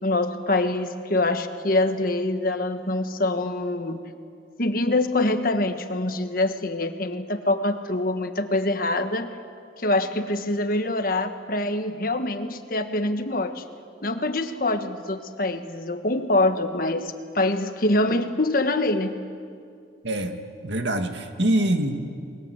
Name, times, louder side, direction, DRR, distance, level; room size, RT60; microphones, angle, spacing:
voice 1, 0.0-4.0 4.6-9.4 9.8-13.6 14.0-19.2, left 2 dB, 50° left, 7 dB, 1.5 m, -25 dB
voice 2, 20.0-22.1, right 1 dB, 75° right, 6 dB, 2.1 m, -25 dB
29.0 x 21.5 x 8.2 m, 2.3 s
head